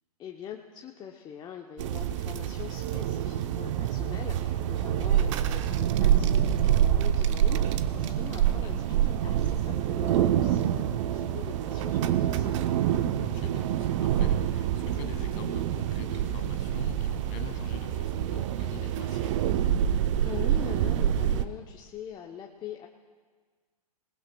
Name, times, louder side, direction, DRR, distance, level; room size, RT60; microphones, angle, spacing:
voice 1, 0.2-12.8 20.2-22.9, left 9 dB, 20° left, 1 dB, 0.7 m, -43 dB
sound 1, 1.8-21.4, right 10 dB, 50° right, 0.7 m, -26 dB
voice 2, 13.2-19.3, left 9 dB, 40° left, 5 dB, 1.9 m, -44 dB
22.5 x 19.0 x 2.3 m, 1.5 s
hypercardioid pair, 120°, 20 cm